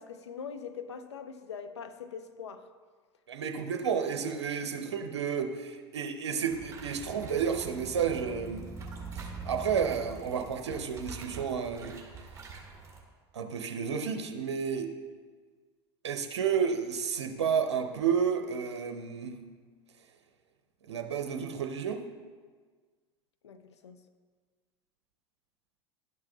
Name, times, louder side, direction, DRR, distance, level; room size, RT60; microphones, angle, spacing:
voice 1, 0.0-2.7 23.4-24.0, left 6 dB, 80° left, 8 dB, 0.6 m, -42 dB
voice 2, 3.3-8.6 9.1-12.0 13.3-14.9 16.0-19.4 20.9-22.0, right 7 dB, 80° right, 5 dB, 0.7 m, -31 dB
sound 1, 6.5-13.0, right 4 dB, 20° right, 1.8 m, -44 dB
12.0 x 5.9 x 2.3 m, 1.5 s
hypercardioid pair, 85°, 14 cm